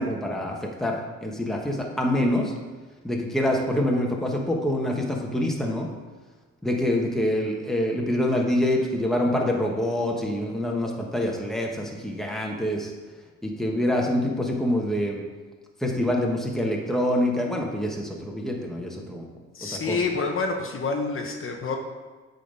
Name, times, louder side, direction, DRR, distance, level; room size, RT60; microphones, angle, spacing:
voice 1, 0.0-2.5 3.0-5.9 6.6-12.9 13.4-15.2 15.8-19.2 19.6-20.0, left 1 dB, ahead, -1 dB, 1.2 m, -26 dB
voice 2, 19.5-21.8, left 4 dB, 45° left, 2 dB, 1.0 m, -27 dB
8.4 x 3.9 x 5.4 m, 1.3 s
cardioid pair, 90°, 30 cm